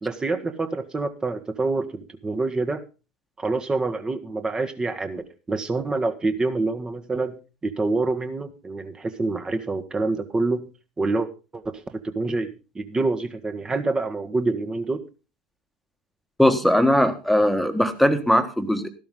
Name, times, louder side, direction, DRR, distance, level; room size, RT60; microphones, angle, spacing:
voice 1, 0.0-2.8 3.4-10.7 11.0-15.0, right 3 dB, 15° right, 8 dB, 1.6 m, -27 dB
voice 2, 16.4-18.9, left 1 dB, ahead, 8 dB, 1.7 m, -19 dB
13.5 x 12.5 x 3.8 m, 0.32 s
figure-of-eight pair, 75°, 5 cm